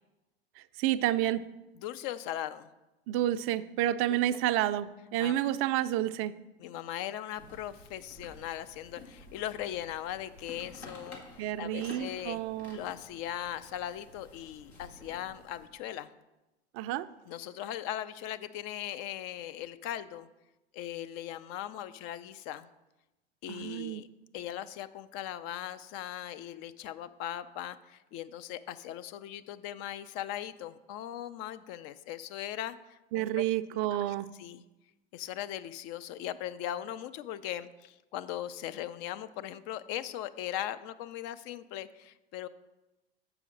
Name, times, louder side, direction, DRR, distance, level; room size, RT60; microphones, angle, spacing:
voice 1, 0.8-1.4 3.1-6.3 11.4-12.8 16.7-17.1 23.5-24.0 33.1-34.3, right 13 dB, 45° right, 13 dB, 0.4 m, -30 dB
voice 2, 1.8-2.7 4.1-4.2 5.2-5.4 6.6-11.2 11.6-12.4 12.7-16.1 17.3-20.3 20.7-22.7 23.4-24.1 24.3-33.4 33.7-33.8 34.4-34.6 35.1-42.5, left 12 dB, 50° left, 13 dB, 0.5 m, -39 dB
sound 1, 7.3-15.7, left 2 dB, 85° left, 1.7 m, -51 dB
6.9 x 4.9 x 6.3 m, 1.0 s
hypercardioid pair, 80°, 31 cm